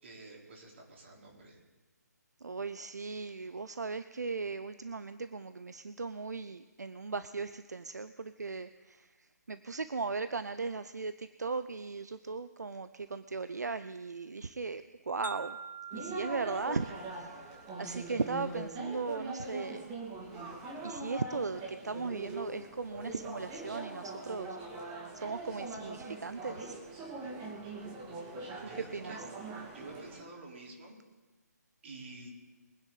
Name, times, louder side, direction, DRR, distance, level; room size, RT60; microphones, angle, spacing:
voice 1, 0.0-1.6 28.5-29.2 29.7-31.0 31.8-32.3, right 2 dB, 45° right, -1 dB, 4.0 m, -49 dB
voice 2, 2.4-15.6 15.9-19.9 20.8-24.6 25.1-26.7 28.7-29.2, right 4 dB, 75° right, 12 dB, 0.6 m, -38 dB
sound 1, 15.2-19.2, right 5 dB, 85° left, 2.8 m, -47 dB
sound 2, 15.9-30.2, right 3 dB, 20° right, 2.3 m, -42 dB
23.0 x 9.9 x 4.0 m, 1.2 s
figure-of-eight pair, 145°, 9 cm